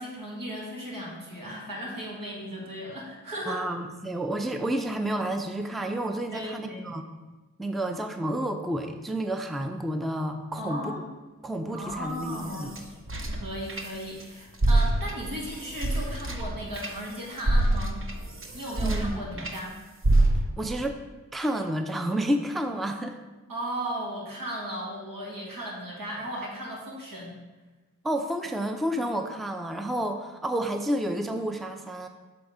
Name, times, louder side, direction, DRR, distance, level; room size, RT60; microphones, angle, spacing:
voice 1, 0.0-3.6 6.3-6.9 10.6-11.1 11.7-12.8 13.2-18.0 18.5-19.7 23.5-27.4, equal, 75° right, -3 dB, 1.9 m, -36 dB
voice 2, 3.5-7.0 7.6-10.9 11.4-12.7 18.8-19.5 20.6-21.0 21.3-23.2 28.0-32.1, right 1 dB, ahead, 6 dB, 0.5 m, -30 dB
sound 1, 11.9-14.2 14.5-19.6 20.0-20.7, right 1 dB, 40° right, 0.8 m, -27 dB
7.0 x 3.5 x 4.9 m, 1.2 s
cardioid pair, 40°, 34 cm